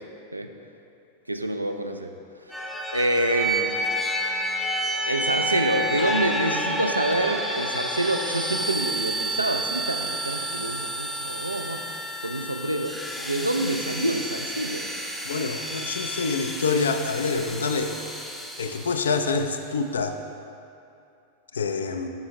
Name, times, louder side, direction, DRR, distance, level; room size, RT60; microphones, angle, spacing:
voice 1, 1.3-2.1 2.5-2.7 2.9-3.8 5.1-11.8 12.2-14.9, right 1 dB, 85° right, 6 dB, 0.3 m, -27 dB
sound 1, 2.5-19.2, right 1 dB, 5° left, 0.5 m, -30 dB
voice 2, 15.2-17.9 18.6-20.2 21.5-22.1, left 4 dB, 70° left, 7 dB, 0.4 m, -26 dB
7.1 x 5.4 x 3.0 m, 2.6 s
figure-of-eight pair, 90°, 0 cm